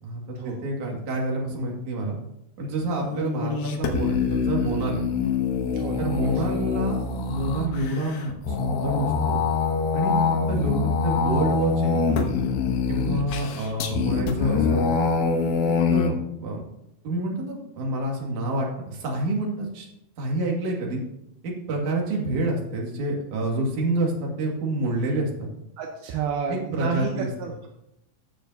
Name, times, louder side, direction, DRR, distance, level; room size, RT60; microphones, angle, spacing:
voice 1, 0.0-2.2 2.6-5.0 6.0-9.4 9.9-10.2 10.5-12.0 12.9-14.8 15.9-16.6 17.0-19.9 20.2-21.0 21.4-25.5 26.5-27.3, right 2 dB, 50° right, -1 dB, 2.7 m, -28 dB
sound 1, 2.8-16.1, left 5 dB, 75° left, 2.2 m, -25 dB
voice 2, 5.7-6.0 6.5-6.6 21.9-22.0 25.8-27.7, right 6 dB, 80° right, 2 dB, 2.2 m, -31 dB
16.0 x 6.7 x 2.7 m, 0.82 s
omnidirectional pair, 5.4 m